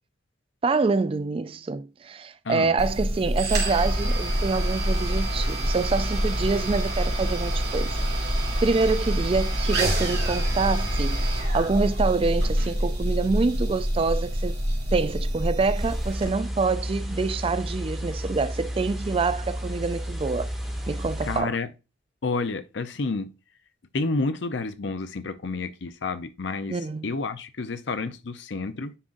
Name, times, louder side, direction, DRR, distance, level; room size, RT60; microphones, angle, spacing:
voice 1, 0.6-7.9 8.6-11.2 11.5-14.6 14.9-20.5 20.9-21.5 26.7-27.1, right 4 dB, 30° right, 0.3 m, -26 dB
voice 2, 2.4-2.8 21.2-21.7 22.2-23.3 23.9-28.9, left 3 dB, 70° left, 0.6 m, -30 dB
sound 1, 2.8-16.3, right 1 dB, 60° right, 2.6 m, -26 dB
sound 2, 15.7-21.4, equal, ahead, 2.1 m, -32 dB
9.8 x 3.7 x 2.6 m
head